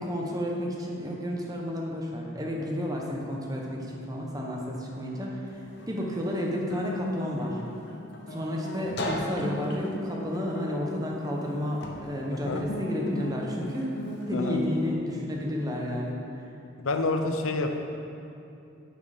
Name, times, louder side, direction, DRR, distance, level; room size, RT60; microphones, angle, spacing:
voice 1, 0.0-5.5 5.9-7.6 8.3-13.9 14.3-16.2, equal, 20° right, -2 dB, 0.8 m, -31 dB
Guitar, 5.5-14.9, left 2 dB, 55° left, 0.8 m, -35 dB
voice 2, 16.8-17.8, left 3 dB, 90° left, 5 dB, 0.6 m, -28 dB
8.6 x 4.4 x 5.0 m, 2.7 s
head